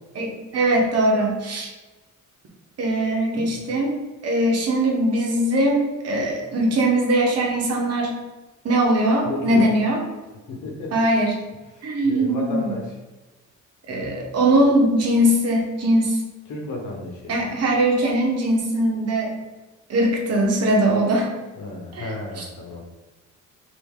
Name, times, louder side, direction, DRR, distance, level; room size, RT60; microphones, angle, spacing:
voice 1, 0.1-1.7 2.8-3.9 4.2-8.1 8.6-10.0 10.9-11.3 11.8-12.8 13.9-16.2 17.3-19.3 19.9-21.3 21.9-22.4, right 1 dB, 55° right, 0 dB, 1.0 m, -21 dB
voice 2, 9.2-9.7 10.5-11.0 11.7-13.0 16.5-17.3 21.6-22.8, left 2 dB, 80° left, 0 dB, 1.0 m, -33 dB
3.1 x 2.8 x 3.6 m, 1.1 s
cardioid pair, 90°, 30 cm